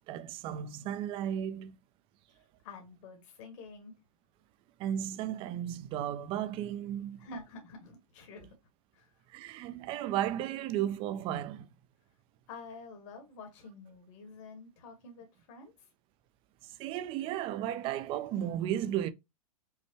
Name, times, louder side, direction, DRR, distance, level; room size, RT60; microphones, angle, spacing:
voice 1, 0.1-1.8 4.8-7.3 9.3-11.7 16.6-19.1, right 11 dB, 30° right, 0.4 m, -34 dB
voice 2, 2.3-3.9 7.2-8.5 8.9-9.1 12.5-15.9, left 3 dB, 55° left, 1.4 m, -48 dB
5.5 x 2.1 x 3.0 m
hypercardioid pair, 135°, 19 cm